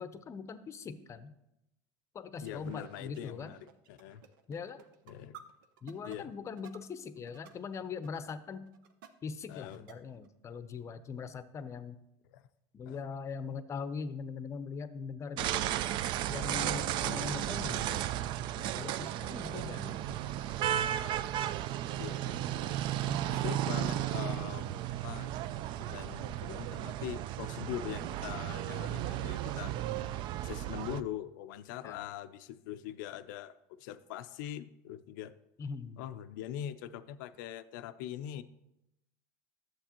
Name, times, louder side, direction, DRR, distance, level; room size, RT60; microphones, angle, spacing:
voice 1, 0.0-1.3 2.1-3.6 4.5-4.8 5.8-8.7 9.2-12.0 12.7-15.7 16.3-18.0 18.6-20.2 23.1-23.5 31.8-32.0 35.6-36.0, left 5 dB, 30° left, 13 dB, 0.6 m, -41 dB
sound 1, 2.3-7.6 7.9-8.2 8.7-9.1 9.4-10.3, right 8 dB, 85° right, 0.8 m, -54 dB
voice 2, 2.4-3.6 3.9-4.2 5.1-5.4 6.0-6.3 9.5-9.8 12.3-12.4 12.9-13.0 22.0-22.7 23.3-25.3 25.7-29.7 30.4-35.3 36.0-38.4, left 11 dB, 80° left, 12 dB, 0.5 m, -42 dB
sound 2, 15.4-31.0, right 12 dB, 50° right, 0.4 m, -34 dB
11.5 x 7.6 x 3.0 m, 0.87 s
supercardioid pair, 115°, 10 cm